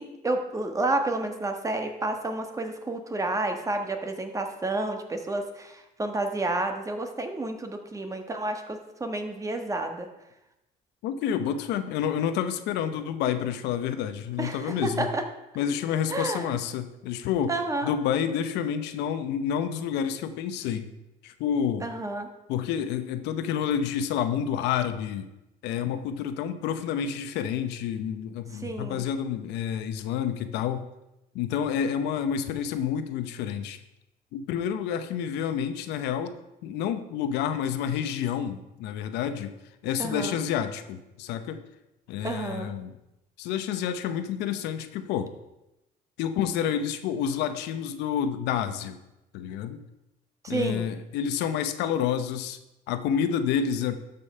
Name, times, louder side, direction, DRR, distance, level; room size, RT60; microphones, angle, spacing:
voice 1, 0.0-10.1 14.4-15.2 16.1-16.6 17.5-17.9 21.8-22.3 28.5-29.0 40.0-40.4 42.2-42.7 50.4-50.9, right 2 dB, 20° right, 5 dB, 1.3 m, -30 dB
voice 2, 11.0-15.1 15.6-17.6 17.8-20.9 21.2-21.9 22.5-25.3 25.6-30.9 31.3-33.8 34.3-36.3 36.6-39.5 39.8-41.6 42.1-42.9 43.4-45.3 46.2-49.0 49.3-49.8 50.5-52.6 52.9-54.0, left 8 dB, 90° left, 10 dB, 0.8 m, -29 dB
12.5 x 5.4 x 5.4 m, 0.92 s
cardioid pair, 110°, 17 cm